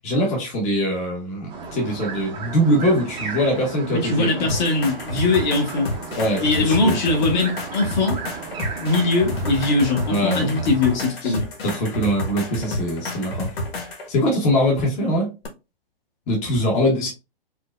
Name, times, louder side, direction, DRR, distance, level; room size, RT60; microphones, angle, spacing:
voice 1, 0.0-4.5 6.2-6.9 10.1-10.6 11.2-11.4 11.6-13.5 14.1-15.3 16.3-17.1, equal, 20° left, 0.9 m, -22 dB
sound 1, 1.5-11.0, right 5 dB, 15° right, 0.7 m, -35 dB
voice 2, 3.9-5.9 6.4-8.2 8.7-11.5, left 3 dB, 50° left, 1.3 m, -21 dB
sound 2, 4.5-14.1 15.4-15.5, left 1 dB, 85° left, 1.3 m, -30 dB
4.5 x 2.1 x 2.3 m
hypercardioid pair, 140°, 29 cm